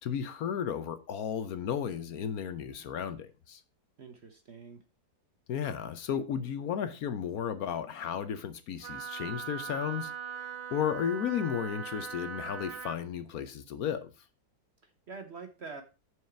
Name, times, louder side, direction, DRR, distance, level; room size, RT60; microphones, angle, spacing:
voice 1, 0.0-3.6 5.5-14.1, left 8 dB, 65° left, 1.0 m, -34 dB
voice 2, 4.0-4.8 14.8-15.8, right 4 dB, 50° right, 0.9 m, -45 dB
Wind instrument woodwind instrument, 8.8-13.0, right 7 dB, 75° right, 0.6 m, -40 dB
8.4 x 4.8 x 4.5 m
omnidirectional pair, 2.0 m